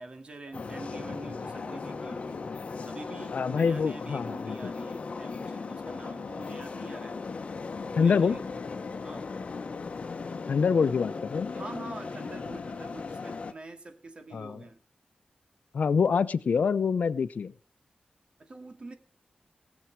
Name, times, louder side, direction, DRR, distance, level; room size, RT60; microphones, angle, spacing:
voice 1, 0.0-2.4 2.9-7.2 8.0-8.4 9.0-9.3 11.5-14.8 18.4-18.9, right 2 dB, 45° right, 2.2 m, -45 dB
sound 1, 0.5-13.5, left 4 dB, 50° left, 1.1 m, -37 dB
voice 2, 3.3-4.5 7.9-8.3 10.5-11.5 14.3-14.6 15.7-17.5, left 6 dB, 80° left, 0.7 m, -25 dB
20.0 x 7.2 x 4.7 m
wide cardioid pair, 150°, 3 cm